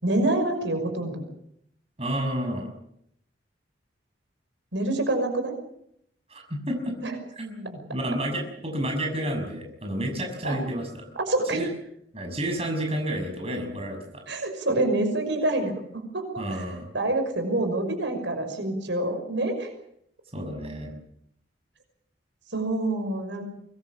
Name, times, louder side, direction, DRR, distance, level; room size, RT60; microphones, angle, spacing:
voice 1, 0.0-1.2 4.7-5.5 7.0-7.2 10.4-10.6 11.2-11.6 14.3-16.6 16.9-19.7 22.5-23.4, right 2 dB, 85° right, 6 dB, 5.9 m, -26 dB
voice 2, 2.0-2.7 6.3-6.9 7.4-11.0 11.5-11.7 12.1-14.2 16.4-16.9 20.3-20.9, right 1 dB, 30° right, 3 dB, 6.2 m, -30 dB
24.0 x 21.5 x 7.3 m, 0.73 s
head